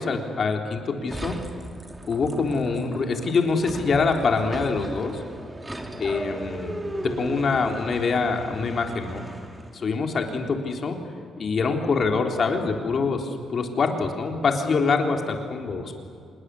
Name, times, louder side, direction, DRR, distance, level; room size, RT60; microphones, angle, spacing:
voice 1, 0.0-1.4 2.1-5.2 6.0-6.7 7.0-9.3 9.7-11.0 11.4-16.0, left 4 dB, 50° left, 3 dB, 3.6 m, -25 dB
sound 1, 1.1-9.8, right 1 dB, 15° right, 2.9 m, -36 dB
26.0 x 21.0 x 8.4 m, 2.4 s
cardioid pair, 90°, 0 cm